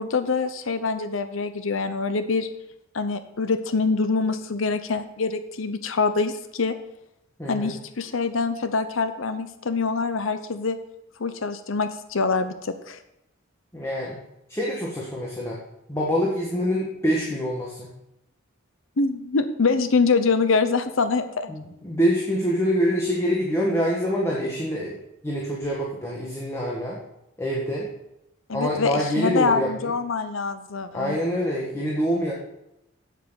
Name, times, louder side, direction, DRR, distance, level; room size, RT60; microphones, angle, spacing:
voice 1, 0.0-2.5 2.9-6.8 7.5-10.8 11.2-13.0 19.0-21.5 28.5-31.2, left 4 dB, 70° left, 10 dB, 0.8 m, -25 dB
voice 2, 7.4-7.8 13.7-14.2 14.5-15.6 15.9-17.9 21.5-25.0 25.2-27.0 27.4-27.9 28.5-29.9 30.9-32.3, equal, 15° left, -4 dB, 1.7 m, -25 dB
8.6 x 7.9 x 6.9 m, 0.85 s
head